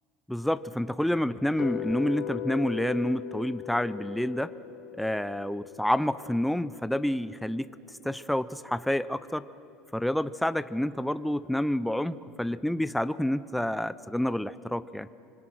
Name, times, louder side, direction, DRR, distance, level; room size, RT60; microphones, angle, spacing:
voice 1, 0.3-4.5 5.0-7.7 8.0-9.5 9.9-15.1, left 1 dB, 5° left, 14 dB, 0.5 m, -28 dB
sound 1, 1.6-7.7, left 11 dB, 55° left, 2.4 m, -39 dB
25.0 x 21.0 x 6.2 m, 2.6 s
supercardioid pair, 115°, 0 cm